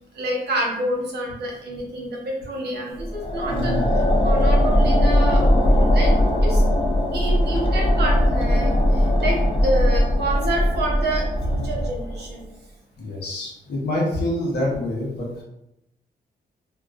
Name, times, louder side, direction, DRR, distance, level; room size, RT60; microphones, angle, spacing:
voice 1, 0.2-3.8 4.2-6.1 6.4-6.6 7.1-8.7 9.2-9.4 9.6-12.4, right 1 dB, 80° right, -2 dB, 0.8 m, -28 dB
sound 1, 3.0-12.3, equal, 30° left, 0.3 m, -19 dB
voice 2, 3.5-3.9 7.6-7.7 11.6-11.7 13.0-15.4, left 1 dB, 85° left, -3 dB, 0.9 m, -26 dB
2.3 x 2.2 x 2.3 m, 0.85 s
wide cardioid pair, 135°, 17 cm